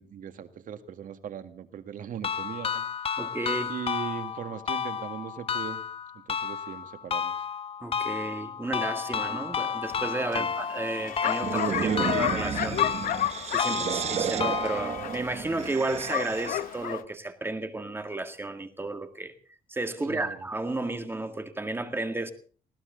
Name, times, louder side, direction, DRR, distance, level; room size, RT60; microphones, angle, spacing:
voice 1, 0.0-3.2 3.7-5.8 6.1-7.4 10.3-10.5 13.6-14.0 20.0-20.5, right 8 dB, 60° right, 1.8 m, -39 dB
sound 1, 2.2-15.2, left 7 dB, 40° left, 0.8 m, -32 dB
voice 2, 3.2-3.7 7.8-12.8 13.5-19.3 19.7-22.3, right 2 dB, 15° right, 1.9 m, -32 dB
Bark, 9.8-17.0, left 12 dB, 65° left, 0.9 m, -32 dB
sound 2, 11.3-16.7, right 7 dB, 45° right, 0.9 m, -32 dB
20.5 x 16.5 x 3.9 m
cardioid pair, 115°, 15 cm